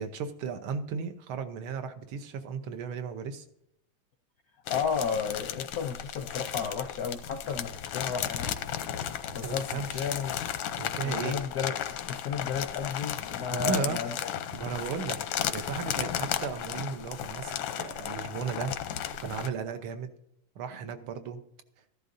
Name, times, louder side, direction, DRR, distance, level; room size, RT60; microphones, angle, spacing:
voice 1, 0.0-3.4 9.4-10.1 10.8-11.4 13.5-14.0 14.5-15.2 15.5-18.7 19.2-20.1 20.5-21.4, right 6 dB, 85° right, 8 dB, 1.7 m, -35 dB
sound 1, 4.7-19.5, left 10 dB, 85° left, 1.6 m, -34 dB
voice 2, 4.7-8.5 9.3-10.4 11.0-11.7 12.0-14.3, left 6 dB, 70° left, 6 dB, 0.9 m, -33 dB
14.0 x 11.5 x 2.6 m, 0.80 s
omnidirectional pair, 2.3 m